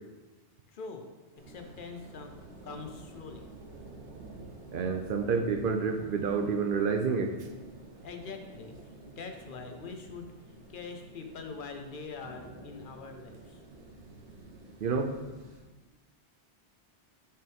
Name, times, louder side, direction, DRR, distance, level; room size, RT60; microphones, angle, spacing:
voice 1, 0.7-1.1 1.5-2.3 2.6-3.5 8.0-10.3 10.7-13.6, left 4 dB, 55° left, 5 dB, 0.9 m, -43 dB
sound 1, 1.4-15.6, right 2 dB, 80° right, 1.3 m, -50 dB
voice 2, 4.7-7.3 14.8-15.1, right 5 dB, 55° right, 5 dB, 0.8 m, -29 dB
6.6 x 5.7 x 3.5 m, 1.2 s
omnidirectional pair, 1.1 m